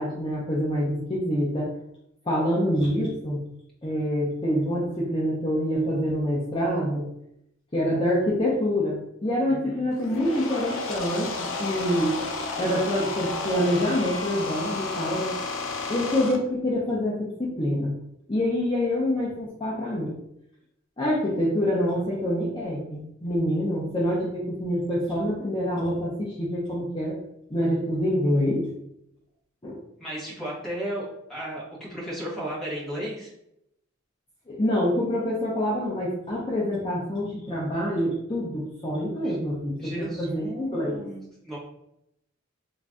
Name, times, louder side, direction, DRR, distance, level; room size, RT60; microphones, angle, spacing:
voice 1, 0.0-1.7 2.3-3.4 3.8-7.1 7.7-12.1 12.6-15.3 15.9-18.0 18.3-20.2 21.0-27.2 27.5-28.7 29.6-29.8 34.5-41.0, equal, 25° left, -6 dB, 0.6 m, -26 dB
voice 2, 9.5-9.9 30.0-33.3 39.2-39.4 39.8-41.6, right 1 dB, ahead, -7 dB, 1.1 m, -35 dB
sound 1, 9.9-16.4, left 3 dB, 75° left, 0.5 m, -32 dB
3.1 x 2.5 x 3.5 m, 0.79 s
head